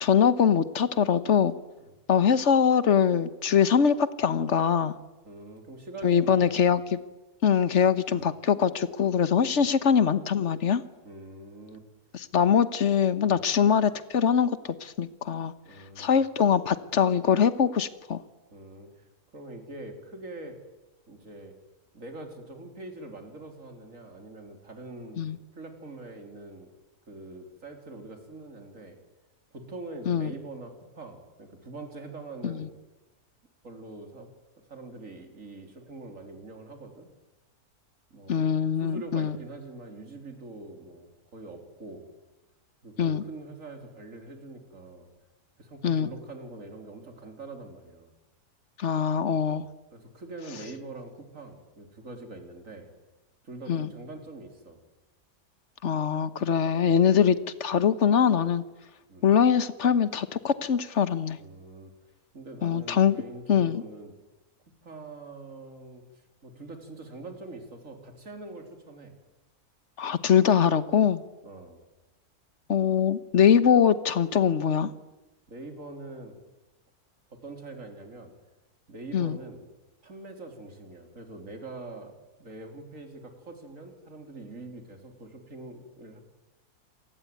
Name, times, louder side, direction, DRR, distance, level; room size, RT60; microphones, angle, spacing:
voice 1, 0.0-1.5 2.1-4.9 6.0-7.0 7.4-10.8 12.1-14.5 14.8-15.5 16.0-18.2 25.2-25.4 30.1-30.3 32.4-32.6 38.3-39.3 43.0-43.2 45.8-46.1 48.8-49.6 53.7-53.9 55.8-58.6 59.2-61.4 62.6-63.2 63.5-63.8 70.0-71.2 72.7-74.9 79.1-79.4, left 7 dB, 50° left, 14 dB, 1.4 m, -23 dB
voice 2, 5.2-6.7 8.1-8.3 9.5-9.7 11.0-11.8 13.3-13.5 15.7-16.2 18.5-20.6 21.1-21.5 21.9-25.3 25.5-26.7 27.1-29.0 29.5-32.7 33.6-37.1 38.1-38.5 38.8-42.1 42.8-45.1 45.6-48.1 49.5-49.6 49.9-52.9 53.4-54.8 56.8-57.1 59.1-59.3 61.4-61.9 62.3-64.1 64.8-66.0 66.4-69.1 71.4-71.8 75.5-76.3 77.3-78.3 78.9-79.6 80.0-82.1 82.4-86.2, right 2 dB, 55° right, 5 dB, 4.1 m, -44 dB
27.5 x 19.5 x 9.5 m, 1.1 s
omnidirectional pair, 1.6 m